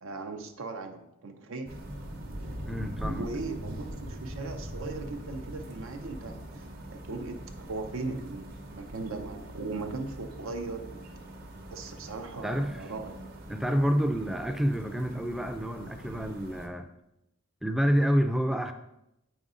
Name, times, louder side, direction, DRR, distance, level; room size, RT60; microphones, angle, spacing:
voice 1, 0.0-1.8 3.2-11.1 11.7-13.3, right 3 dB, 75° right, 6 dB, 0.6 m, -38 dB
sound 1, 1.7-16.7, right 1 dB, 45° right, 0.8 m, -42 dB
voice 2, 2.7-3.3 12.4-12.8 13.5-16.9 17.6-18.7, equal, ahead, 7 dB, 0.4 m, -28 dB
7.8 x 5.2 x 3.7 m, 0.86 s
head